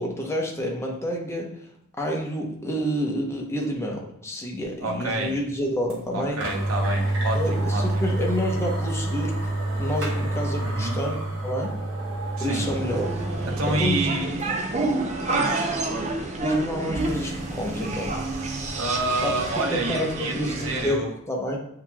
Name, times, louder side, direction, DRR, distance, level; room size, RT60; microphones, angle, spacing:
voice 1, 0.0-1.6 2.0-6.4 7.3-9.3 9.8-11.7 12.4-13.2 13.6-14.1 14.5-14.6 16.4-18.2 19.2-21.6, equal, 15° left, -1 dB, 0.8 m, -29 dB
voice 2, 4.8-5.4 6.1-8.1 10.6-11.0 12.4-12.7 13.5-14.6 15.3-15.7 18.7-21.1, right 2 dB, 90° right, 0 dB, 0.9 m, -28 dB
sound 1, 5.9-6.0 6.4-14.0 14.4-14.5 17.0-19.6, right 1 dB, 65° right, 1.0 m, -29 dB
sound 2, 12.6-20.9, right 2 dB, 35° right, 0.5 m, -29 dB
7.6 x 2.9 x 2.3 m, 0.72 s
head